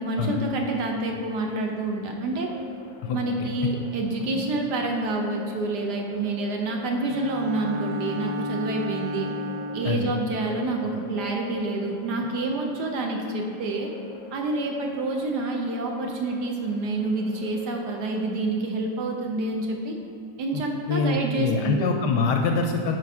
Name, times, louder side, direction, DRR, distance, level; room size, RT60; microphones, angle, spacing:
voice 1, 0.0-2.5 3.1-9.3 9.7-13.9 14.3-20.0 20.4-21.9, right 2 dB, 65° right, 2 dB, 1.1 m, -28 dB
sound 1, 2.4-18.3, left 6 dB, 90° left, 1.5 m, -46 dB
voice 2, 3.0-3.5 9.8-10.1 20.5-23.0, left 4 dB, 75° left, 3 dB, 1.1 m, -25 dB
Bowed string instrument, 7.1-10.1, left 1 dB, 85° right, 0.7 m, -32 dB
7.8 x 5.2 x 4.7 m, 2.6 s
omnidirectional pair, 2.1 m